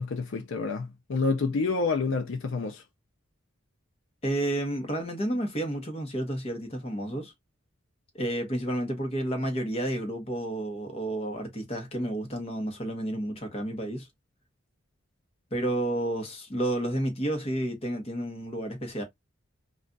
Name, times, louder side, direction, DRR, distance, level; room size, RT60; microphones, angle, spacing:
voice 1, 0.0-2.8, left 4 dB, 70° left, 0.5 m, -28 dB
voice 2, 4.2-7.3 8.1-14.1 15.5-19.0, right 1 dB, 30° left, 0.9 m, -31 dB
2.4 x 2.2 x 3.8 m
head